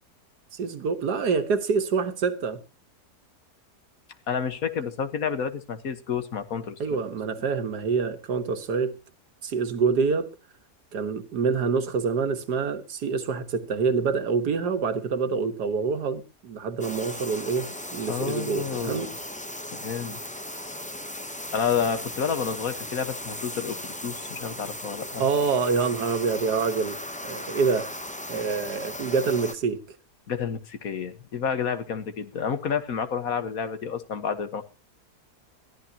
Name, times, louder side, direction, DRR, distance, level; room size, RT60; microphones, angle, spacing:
voice 1, 0.5-2.6 6.8-9.0 9.4-10.3 10.9-19.1 25.2-27.0 27.2-27.9 28.3-29.8, right 5 dB, 80° right, 1.9 m, -26 dB
voice 2, 4.3-7.0 18.1-19.1 19.7-20.2 21.5-25.2 30.3-34.6, left 7 dB, 60° left, 1.6 m, -30 dB
sound 1, 16.8-29.5, left 1 dB, 10° left, 0.4 m, -37 dB
21.0 x 14.0 x 2.8 m
omnidirectional pair, 1.7 m